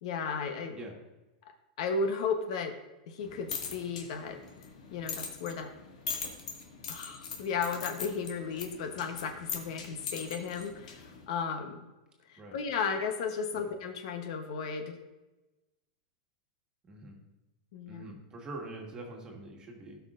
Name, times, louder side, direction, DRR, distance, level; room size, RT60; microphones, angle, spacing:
voice 1, 0.0-0.8 1.8-2.8 3.1-4.4 4.9-5.7 6.9-11.9 12.3-15.0 17.7-18.2, left 5 dB, 60° left, 6 dB, 1.0 m, -34 dB
sound 1, 3.2-11.2, left 5 dB, 85° left, 1.8 m, -42 dB
voice 2, 16.8-17.2 17.9-20.0, right 2 dB, 20° right, 0 dB, 1.6 m, -44 dB
16.5 x 5.7 x 2.5 m, 1.1 s
supercardioid pair, 155°, 4 cm